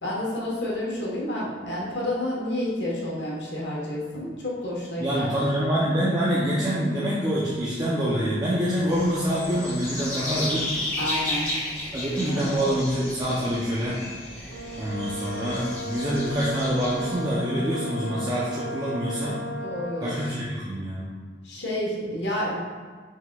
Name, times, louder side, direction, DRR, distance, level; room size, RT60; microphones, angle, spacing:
voice 1, 0.0-5.3 11.0-11.5 12.2-12.5 19.5-20.3 21.4-22.6, left 1 dB, 70° left, -5 dB, 1.1 m, -30 dB
voice 2, 5.0-10.7 11.9-14.0 14.7-19.4 20.0-21.1, equal, 20° right, -7 dB, 0.5 m, -26 dB
sound 1, 8.9-17.3, left 1 dB, 15° left, 1.4 m, -34 dB
Brass instrument, 14.5-20.3, equal, 90° right, 0.3 m, -35 dB
4.4 x 4.0 x 2.2 m, 1.5 s
head